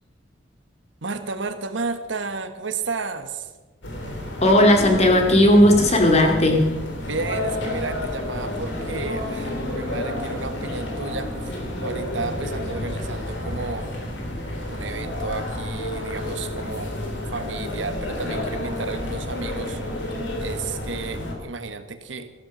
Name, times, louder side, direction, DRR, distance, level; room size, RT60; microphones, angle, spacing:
voice 1, 1.0-3.5 7.0-13.9 14.7-17.0 17.3-22.3, right 4 dB, 80° right, 9 dB, 1.3 m, -33 dB
sound 1, 3.8-21.3, left 1 dB, 70° left, 3.3 m, -30 dB
voice 2, 4.4-6.7, left 1 dB, 35° left, 3 dB, 2.3 m, -16 dB
14.0 x 12.5 x 6.5 m, 1.2 s
head